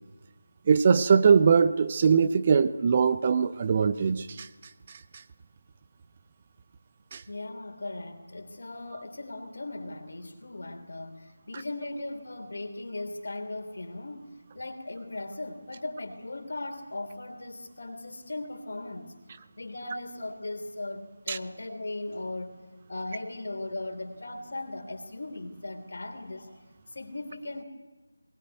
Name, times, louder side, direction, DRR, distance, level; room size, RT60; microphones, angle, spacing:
voice 1, 0.7-4.5 7.1-7.2 21.3-21.4, right 6 dB, 25° right, 0.7 m, -21 dB
voice 2, 7.3-14.3 14.5-19.1 19.6-22.6 22.9-26.6 26.9-27.6, left 2 dB, 50° left, 3.4 m, -38 dB
21.0 x 20.0 x 9.5 m
figure-of-eight pair, 165°, 0 cm